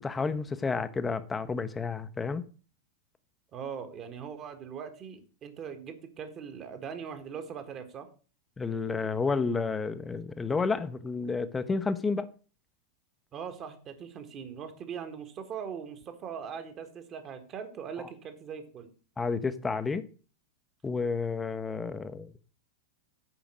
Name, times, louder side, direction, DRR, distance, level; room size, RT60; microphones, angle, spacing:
voice 1, 0.0-2.5 8.6-12.3 19.2-20.1 20.8-22.4, left 4 dB, 15° left, 0.7 m, -31 dB
voice 2, 3.5-8.1 13.3-18.9, right 7 dB, 30° right, 1.5 m, -41 dB
8.7 x 5.1 x 6.2 m
figure-of-eight pair, 90°, 0 cm